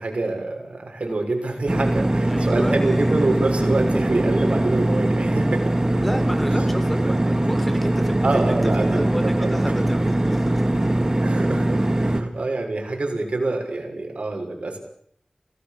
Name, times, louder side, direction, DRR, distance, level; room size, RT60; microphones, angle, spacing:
voice 1, 0.0-5.7 6.5-6.7 8.2-9.6 11.2-14.8, right 2 dB, 75° right, 2 dB, 6.5 m, -26 dB
sound 1, 1.7-12.2, right 1 dB, 30° right, 2.3 m, -21 dB
voice 2, 2.3-3.4 6.0-10.9, equal, 5° left, 8 dB, 4.3 m, -32 dB
28.0 x 19.0 x 6.9 m, 0.64 s
wide cardioid pair, 65°, 2 cm